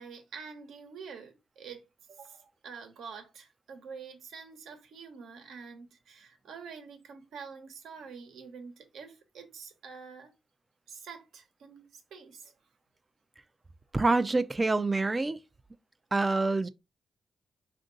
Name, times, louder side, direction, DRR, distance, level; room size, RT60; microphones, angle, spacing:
voice 1, 0.0-10.3 10.9-12.5, right 5 dB, 85° right, 1.0 m, -47 dB
voice 2, 13.9-15.4 16.1-16.7, right 3 dB, 25° right, 0.4 m, -26 dB
4.4 x 2.6 x 3.8 m
cardioid pair, 80°, 0 cm